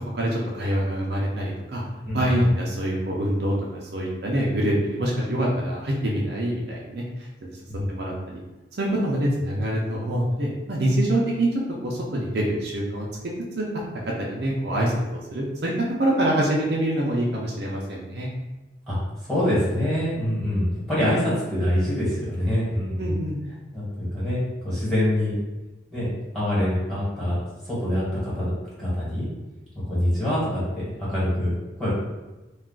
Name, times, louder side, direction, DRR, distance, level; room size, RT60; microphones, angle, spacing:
voice 1, 0.1-1.8 2.1-7.6 7.9-8.4 8.8-13.1 13.6-13.7 14.0-14.9 15.3-18.3 23.0-23.4, right 1 dB, 55° right, -3 dB, 0.5 m, -25 dB
voice 2, 2.0-2.5 7.7-7.9 18.9-19.0 19.2-23.1 23.7-25.3 25.9-26.1 26.3-27.3 27.6-28.5 28.8-29.3 29.9-31.5 31.8-31.9, left 1 dB, ahead, -10 dB, 1.2 m, -25 dB
2.3 x 2.3 x 3.6 m, 1.1 s
head